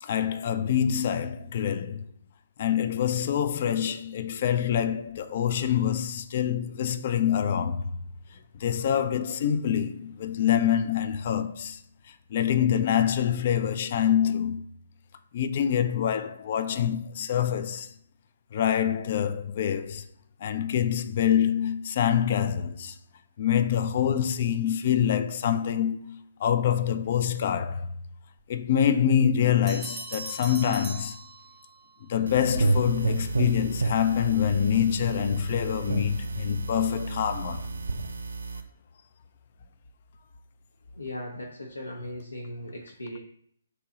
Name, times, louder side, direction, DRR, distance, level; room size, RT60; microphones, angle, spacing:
voice 1, 0.0-2.1 2.6-7.9 8.6-11.8 12.3-14.6 15.3-17.9 18.5-20.1 20.4-23.0 23.4-27.9 28.5-31.2 32.0-37.7, left 9 dB, 40° left, 0.3 m, -26 dB
Bell, 29.7-31.9, right 3 dB, 20° right, 0.5 m, -40 dB
sound 1, 32.3-38.6, right 2 dB, 75° right, 0.4 m, -30 dB
voice 2, 41.0-43.2, left 1 dB, 80° left, 0.6 m, -38 dB
3.0 x 2.9 x 3.7 m
figure-of-eight pair, 135°, 0 cm